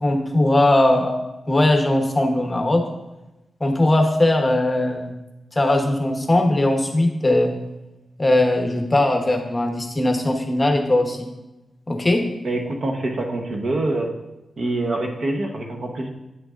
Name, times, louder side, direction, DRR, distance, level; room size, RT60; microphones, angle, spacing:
voice 1, 0.0-1.2 1.5-2.8 3.6-5.1 5.5-7.6 8.2-11.3 11.9-12.3, left 1 dB, 25° left, 4 dB, 1.0 m, -19 dB
voice 2, 12.4-14.1 14.6-16.1, right 2 dB, 65° right, 2 dB, 1.0 m, -25 dB
9.2 x 6.2 x 2.5 m, 0.99 s
cardioid pair, 75°, 0 cm